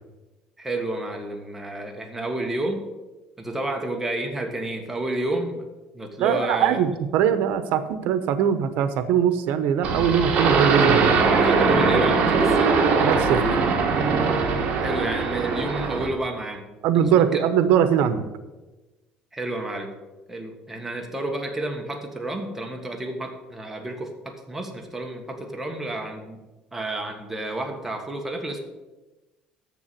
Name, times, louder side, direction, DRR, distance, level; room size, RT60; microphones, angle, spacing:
voice 1, 0.6-2.8 3.4-5.6 5.9-6.8 11.3-12.7 14.8-16.7 16.9-17.4 19.3-19.9 20.3-26.4 26.7-28.6, right 2 dB, 10° right, 3 dB, 1.4 m, -30 dB
voice 2, 6.2-11.2 13.0-13.4 16.8-18.2, right 9 dB, 80° right, 11 dB, 0.9 m, -21 dB
sound 1, 9.8-16.1, right 4 dB, 50° right, 1.6 m, -21 dB
7.1 x 6.7 x 7.8 m, 1.1 s
cardioid pair, 135°, 3 cm